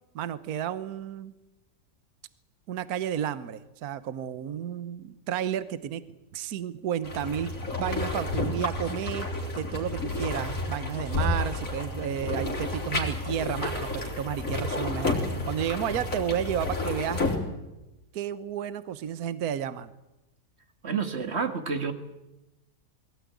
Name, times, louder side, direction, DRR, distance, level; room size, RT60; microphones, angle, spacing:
voice 1, 0.1-1.3 2.7-6.0 6.3-9.3 9.5-13.9 14.2-17.2 18.1-19.9, right 9 dB, 65° right, 14 dB, 1.4 m, -32 dB
sound 1, 7.0-17.4, left 2 dB, 50° left, 3.9 m, -31 dB
voice 2, 20.8-21.9, right 5 dB, 40° right, 7 dB, 2.1 m, -29 dB
22.0 x 17.0 x 9.5 m, 0.97 s
omnidirectional pair, 1.8 m